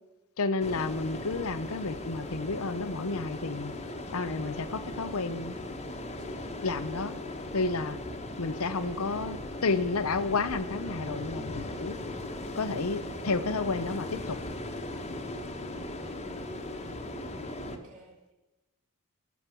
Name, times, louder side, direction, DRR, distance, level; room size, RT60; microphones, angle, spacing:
voice 1, 0.4-3.7 4.1-5.6 6.6-7.1 7.5-8.0 8.4-12.0 12.5-14.4, left 3 dB, 70° left, 14 dB, 0.8 m, -31 dB
sound 1, 0.6-17.8, left 1 dB, 30° left, 1.4 m, -38 dB
voice 2, 15.7-16.9 17.5-18.3, right 1 dB, 65° right, -11 dB, 5.9 m, -55 dB
18.0 x 7.3 x 6.1 m, 1.1 s
head